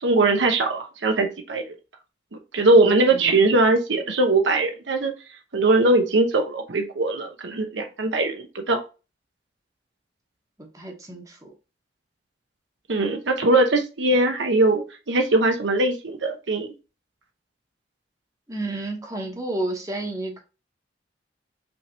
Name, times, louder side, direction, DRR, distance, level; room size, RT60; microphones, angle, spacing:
voice 1, 0.0-1.6 2.5-5.1 5.5-8.8 12.9-16.7, right 2 dB, 85° right, 0.9 m, -21 dB
voice 2, 3.1-3.4 10.6-11.5 18.5-20.4, right 2 dB, 20° right, 1.0 m, -31 dB
5.3 x 3.4 x 2.8 m
head